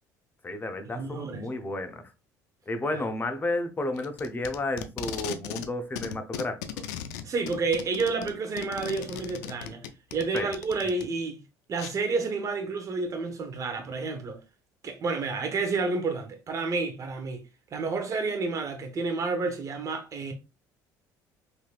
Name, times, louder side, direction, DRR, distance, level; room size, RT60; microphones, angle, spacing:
voice 1, 0.4-2.1 2.7-6.6 10.3-10.5, left 2 dB, 20° left, 0.7 m, -32 dB
voice 2, 0.9-1.5 7.2-9.9 10.1-11.4 11.7-14.4 14.8-17.4 17.7-20.3, right 4 dB, 40° right, 0.8 m, -30 dB
Packing tape duct tape, 4.0-5.7 6.0-11.0 11.8-11.9, left 9 dB, 85° left, 0.4 m, -37 dB
3.3 x 2.8 x 2.4 m
supercardioid pair, 80°, 9 cm